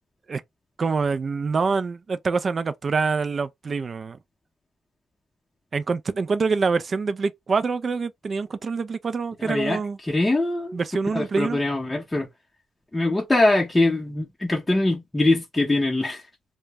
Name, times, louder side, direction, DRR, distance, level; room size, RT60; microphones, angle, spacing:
voice 1, 0.8-4.2 5.7-10.0 10.7-11.6, right 4 dB, 45° right, 0.3 m, -25 dB
voice 2, 9.4-10.8 11.1-12.3 12.9-16.2, left 2 dB, 15° left, 0.6 m, -23 dB
2.1 x 2.1 x 3.3 m
cardioid pair, 75°, 0 cm